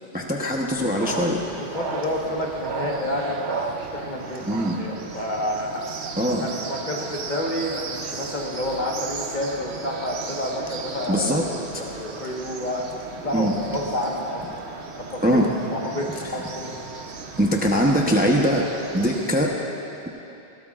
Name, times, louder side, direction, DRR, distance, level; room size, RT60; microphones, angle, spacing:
voice 1, 0.1-1.4 4.5-4.8 6.2-6.5 11.1-11.4 13.3-13.5 15.2-15.5 16.2-16.4 17.4-18.7 18.9-19.6, equal, 10° right, -1 dB, 0.8 m, -21 dB
sound 1, 1.0-19.3, right 4 dB, 75° right, 1.1 m, -35 dB
voice 2, 1.7-5.9 6.4-11.5 11.8-12.9 13.2-14.4 14.7-16.8, left 1 dB, 45° left, -2 dB, 1.5 m, -29 dB
20.5 x 16.5 x 2.5 m, 2.9 s
omnidirectional pair, 1.1 m